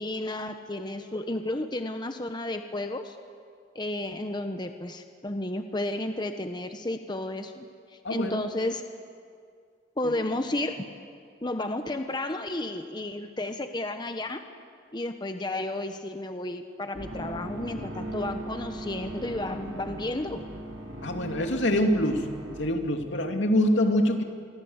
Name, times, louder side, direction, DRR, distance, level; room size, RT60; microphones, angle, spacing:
voice 1, 0.0-3.2 3.7-7.7 8.1-8.8 10.0-10.8 11.4-14.4 14.9-20.4, left 1 dB, 25° left, 7 dB, 1.0 m, -32 dB
voice 2, 8.0-8.4 10.0-10.1 21.0-22.2 22.6-24.2, left 1 dB, 80° left, 4 dB, 2.7 m, -24 dB
sound 1, 16.9-22.7, right 1 dB, 85° right, 4.4 m, -38 dB
26.5 x 23.5 x 8.1 m, 2.2 s
head